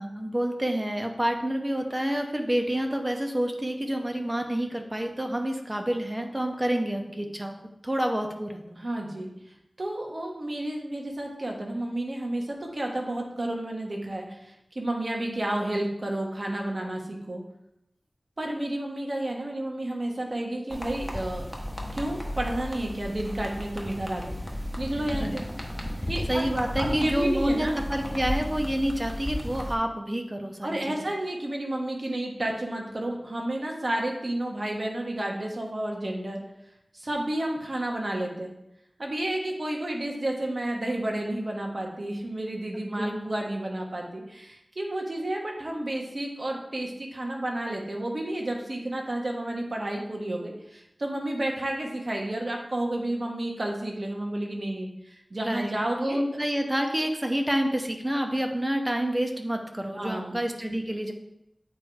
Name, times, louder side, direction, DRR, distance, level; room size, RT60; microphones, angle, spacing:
voice 1, 0.0-7.6 7.8-8.6 25.1-25.4 26.3-31.1 43.0-43.2 55.4-61.1, equal, 20° right, 4 dB, 0.8 m, -28 dB
voice 2, 8.8-17.4 18.4-21.4 21.9-24.3 24.8-25.4 26.1-26.4 26.8-27.8 30.6-36.4 36.9-38.5 39.0-56.2 59.9-60.4, right 1 dB, 55° right, 0 dB, 1.3 m, -31 dB
sound 1, 20.7-29.7, left 1 dB, 10° left, 1.2 m, -34 dB
8.5 x 3.3 x 4.6 m, 0.85 s
wide cardioid pair, 70°, 0 cm